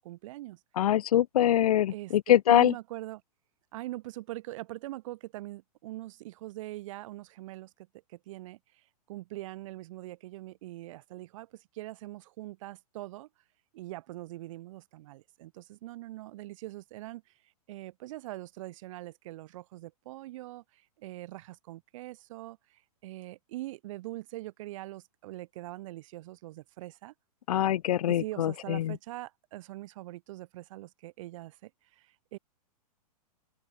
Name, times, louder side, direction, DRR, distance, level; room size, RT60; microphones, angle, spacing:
voice 1, 0.0-0.6 1.9-3.2 3.7-13.3 13.7-27.1 28.1-32.4, right 17 dB, 55° right, 3.8 m, -43 dB
voice 2, 0.8-2.7 27.5-29.0, left 12 dB, 70° left, 0.7 m, -24 dB
open air
hypercardioid pair, 120°, 20 cm